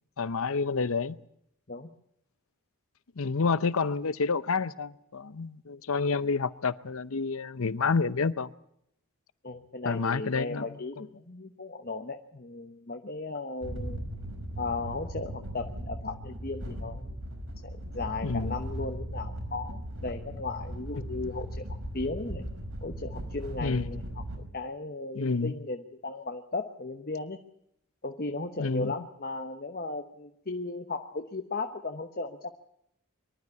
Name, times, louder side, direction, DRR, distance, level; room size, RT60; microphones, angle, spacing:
voice 1, 0.2-1.1 3.2-8.5 9.8-10.6 18.2-18.6 23.6-24.0 25.1-25.5 28.6-28.9, left 4 dB, 70° left, 0.7 m, -29 dB
voice 2, 9.4-14.0 14.6-17.2 17.6-21.6 21.9-22.5 22.8-24.2 24.5-27.4 28.0-32.5, left 3 dB, 40° left, 1.0 m, -36 dB
sound 1, 13.6-24.4, equal, 75° right, 5.1 m, -38 dB
24.0 x 12.5 x 9.5 m
head